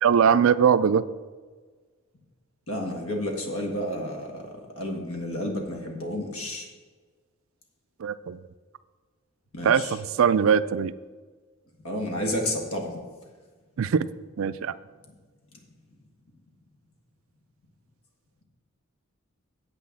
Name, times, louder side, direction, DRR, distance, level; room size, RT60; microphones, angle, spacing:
voice 1, 0.0-1.0 8.0-8.4 9.6-10.9 13.8-14.1 14.4-14.7, right 7 dB, 65° right, 15 dB, 0.4 m, -21 dB
voice 2, 2.7-6.7 9.5-10.0 11.8-13.0, left 1 dB, 75° left, 2 dB, 1.8 m, -31 dB
8.1 x 6.3 x 7.2 m, 1.4 s
head